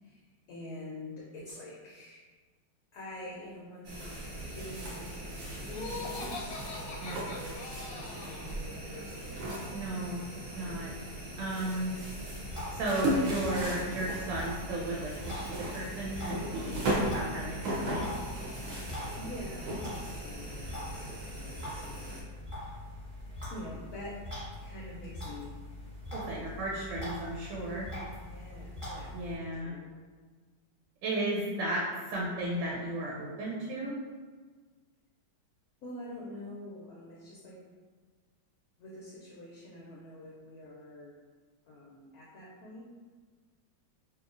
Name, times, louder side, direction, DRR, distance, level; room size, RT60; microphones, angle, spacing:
voice 1, 0.5-2.2 2.9-4.3 4.5-9.4 9.8-10.0 10.6-10.9 19.2-22.2 22.5-22.7 23.5-24.2 24.6-25.5 27.6-27.9 28.2-29.9 35.8-37.6 38.8-41.2 41.7-42.9, left 1 dB, 70° left, -5 dB, 0.9 m, -46 dB
sound 1, 3.8-22.2, right 1 dB, 60° right, 0.9 m, -37 dB
Laughter, 5.7-8.5, left 4 dB, 90° left, 1.3 m, -42 dB
voice 2, 9.7-10.2 10.6-10.9 11.4-11.9 12.7-18.1 26.1-27.9 29.1-29.7 31.0-33.9, right 1 dB, 85° right, -5 dB, 1.3 m, -34 dB
sound 2, 12.1-29.4, left 1 dB, 20° right, 1.2 m, -43 dB
2.9 x 2.7 x 2.4 m, 1.5 s
omnidirectional pair, 1.9 m